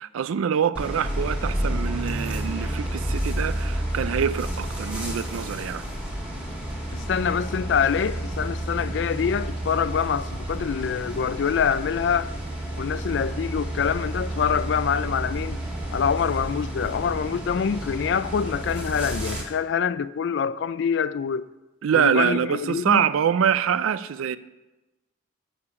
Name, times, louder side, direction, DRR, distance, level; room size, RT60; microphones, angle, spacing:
voice 1, 0.0-5.8 21.8-24.4, right 8 dB, 90° right, 0.4 m, -25 dB
sound 1, 0.7-19.4, right 1 dB, 5° right, 1.7 m, -30 dB
voice 2, 6.9-12.3 12.8-15.6 15.9-21.4 21.9-23.0, left 7 dB, 60° left, 0.3 m, -25 dB
7.3 x 6.6 x 5.8 m
head